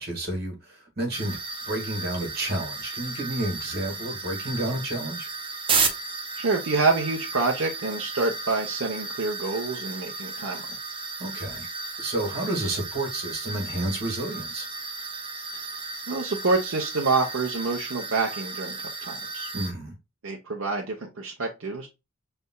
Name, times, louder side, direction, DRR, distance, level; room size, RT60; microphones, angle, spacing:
voice 1, 0.0-1.4 1.7-5.3 11.2-11.7 12.0-14.7 19.5-20.0, right 1 dB, 50° right, 1.9 m, -30 dB
sound 1, 1.1-19.7, right 4 dB, 25° right, 0.7 m, -34 dB
voice 2, 6.4-10.8 16.1-19.5 20.2-21.9, right 3 dB, 75° right, 0.9 m, -27 dB
5.4 x 3.5 x 2.2 m
head